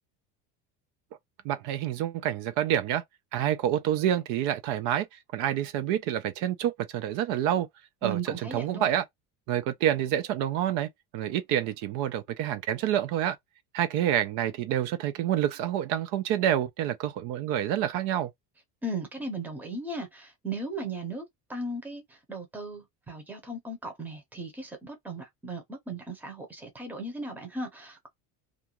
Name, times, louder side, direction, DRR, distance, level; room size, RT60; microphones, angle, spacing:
voice 1, 1.4-3.0 3.3-7.7 8.0-9.0 9.5-13.4 13.7-18.3, right 11 dB, 65° right, 0.5 m, -28 dB
voice 2, 8.0-8.9 18.8-22.0 22.3-28.1, right 2 dB, 5° right, 0.7 m, -37 dB
2.5 x 2.3 x 2.8 m
cardioid pair, 160°, 34 cm